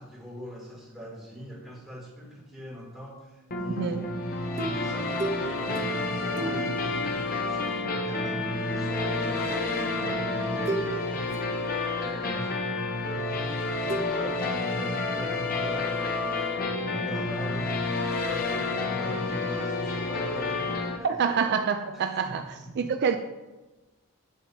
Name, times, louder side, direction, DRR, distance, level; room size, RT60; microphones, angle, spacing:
voice 1, 0.0-4.0 4.4-11.5 11.9-12.6 13.0-17.9 18.2-21.6 21.9-23.2, equal, ahead, -6 dB, 2.8 m, -42 dB
sound 1, 3.5-21.0, left 3 dB, 45° left, 0.8 m, -29 dB
voice 2, 3.8-4.1 21.0-22.4 22.8-23.2, right 6 dB, 50° right, 7 dB, 0.4 m, -26 dB
sound 2, 4.6-8.2 9.5-9.7 10.7-11.0 11.3-12.1 13.9-14.0, right 2 dB, 30° right, 0.8 m, -35 dB
8.5 x 7.5 x 2.7 m, 1.1 s
head